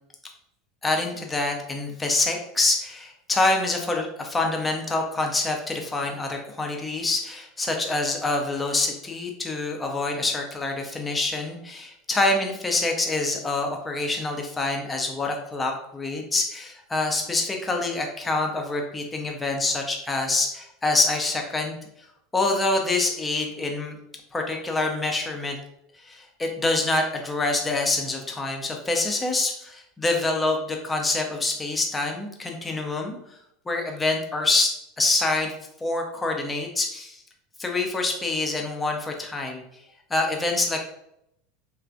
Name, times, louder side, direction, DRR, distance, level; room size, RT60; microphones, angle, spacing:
voice 1, 0.8-21.8 22.3-23.9 24.3-25.6 26.0-33.2 33.7-35.5 35.8-37.2 37.6-39.6 40.1-40.8, left 2 dB, 15° left, 2 dB, 0.6 m, -26 dB
3.2 x 2.3 x 2.6 m, 0.75 s
figure-of-eight pair, 80°, 0 cm